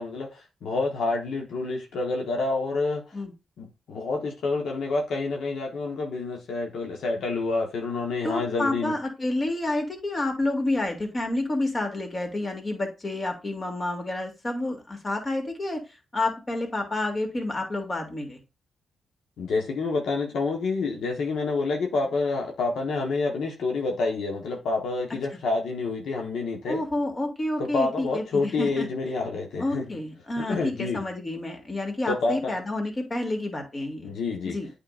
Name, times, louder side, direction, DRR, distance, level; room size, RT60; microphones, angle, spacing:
voice 1, 0.0-3.2 3.6-9.0 19.4-26.8 27.6-29.9 30.4-31.0 32.1-32.5 34.0-34.6, left 3 dB, 75° left, 1.2 m, -28 dB
voice 2, 8.2-15.8 16.1-18.4 26.7-28.9 29.6-34.1 34.4-34.7, left 2 dB, 30° left, 2.3 m, -29 dB
8.9 x 4.9 x 2.5 m
supercardioid pair, 60°, 0 cm